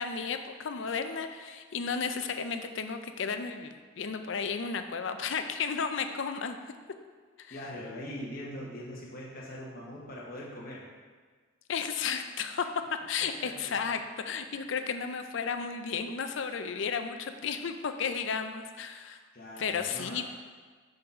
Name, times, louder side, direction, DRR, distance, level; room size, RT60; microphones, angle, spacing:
voice 1, 0.0-6.6 7.4-7.6 11.7-12.7 13.1-14.0 14.2-19.2 19.6-20.3, left 6 dB, 65° left, 8 dB, 0.5 m, -33 dB
voice 2, 7.5-10.8 13.2-13.7 19.3-20.2, left 1 dB, 45° left, -5 dB, 1.1 m, -42 dB
6.5 x 4.0 x 5.5 m, 1.5 s
head